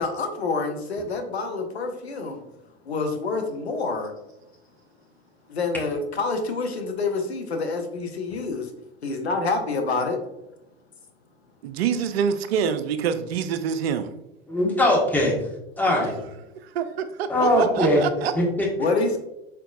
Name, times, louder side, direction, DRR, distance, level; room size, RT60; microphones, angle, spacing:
voice 1, 0.0-2.4 2.9-4.1 5.5-8.7 9.0-10.2 18.8-19.2, left 3 dB, 90° left, 5 dB, 0.7 m, -27 dB
voice 2, 11.6-14.1 16.8-16.9 17.2-18.3, right 7 dB, 70° right, 10 dB, 0.5 m, -25 dB
voice 3, 14.5-15.3 15.8-16.2 17.3-18.0 18.3-18.7, left 1 dB, 5° left, -3 dB, 1.3 m, -20 dB
4.4 x 4.1 x 2.4 m, 0.89 s
hypercardioid pair, 80°, 31 cm